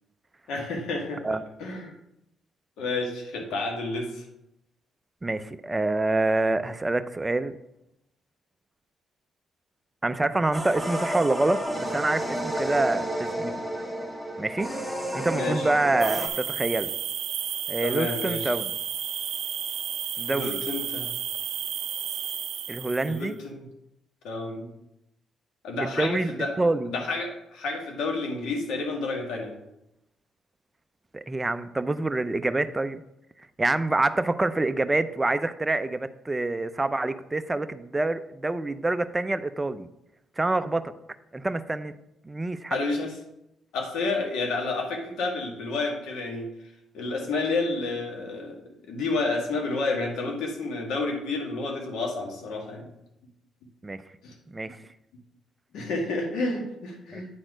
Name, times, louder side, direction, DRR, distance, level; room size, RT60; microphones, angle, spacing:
voice 1, 0.5-1.2 1.6-1.9 2.8-4.2 15.2-15.7 17.8-18.5 20.3-21.1 23.1-23.6 24.2-24.7 25.6-26.6 26.9-29.5 42.7-43.1 43.7-46.5 46.9-48.6 48.9-52.9 54.2-54.3 55.7-57.3, left 3 dB, 85° left, 1 dB, 1.9 m, -30 dB
voice 2, 5.2-7.5 10.0-13.5 14.4-14.7 15.1-16.9 17.7-18.7 20.2-20.6 22.7-23.4 25.8-26.3 26.6-26.9 31.1-33.0 33.6-39.9 40.4-40.9 41.3-41.9 42.3-42.8 53.8-54.0 54.5-54.8 57.1-57.2, right 2 dB, 15° right, 11 dB, 0.5 m, -26 dB
sound 1, 10.5-16.3, equal, ahead, 1.2 m, -31 dB
sound 2, 16.0-23.3, right 9 dB, 70° right, 0.5 m, -32 dB
9.0 x 4.2 x 4.9 m, 0.84 s
cardioid pair, 90°, 0 cm